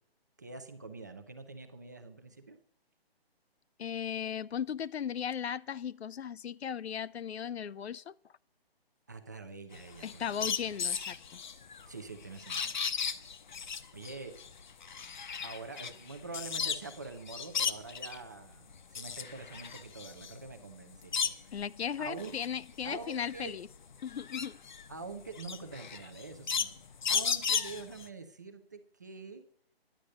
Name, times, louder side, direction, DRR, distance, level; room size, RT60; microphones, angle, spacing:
voice 1, 0.4-2.6 9.1-10.5 11.9-12.8 13.9-14.3 15.4-21.3 22.0-22.3 22.8-23.5 24.9-26.7 27.1-29.4, right 3 dB, 20° right, 0.5 m, -45 dB
voice 2, 3.8-8.2 10.0-11.4 21.5-23.7 24.0-24.6, left 8 dB, 85° left, 0.6 m, -37 dB
sound 1, 9.7-17.0 17.3-18.2 18.7-21.6 22.1-28.1, left 6 dB, 50° left, 0.8 m, -35 dB
10.0 x 9.3 x 6.3 m
hypercardioid pair, 165°, 31 cm